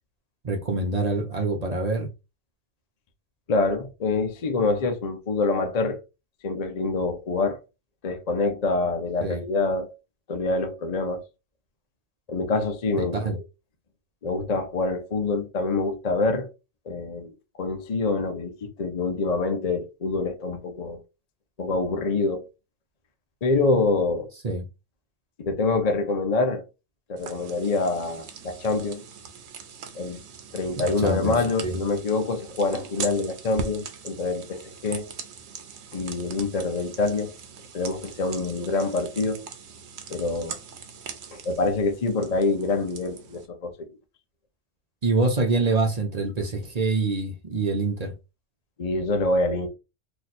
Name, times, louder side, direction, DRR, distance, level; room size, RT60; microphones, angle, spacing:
voice 1, 0.4-2.1 9.2-9.4 13.0-13.4 24.4-24.6 30.7-31.8 45.0-48.1, right 3 dB, 40° right, 0.7 m, -25 dB
voice 2, 3.5-6.0 6.4-7.6 8.0-9.9 10.3-11.2 12.3-13.3 14.2-16.5 16.9-21.0 21.6-22.5 23.4-24.3 25.4-26.6 27.1-29.0 30.0-30.2 30.5-35.1 35.9-37.3 37.7-39.5 40.1-40.6 41.3-43.9 48.8-49.7, left 3 dB, 40° left, 0.7 m, -26 dB
sound 1, 27.2-43.5, right 5 dB, 70° right, 1.0 m, -41 dB
3.0 x 2.5 x 4.1 m
omnidirectional pair, 1.2 m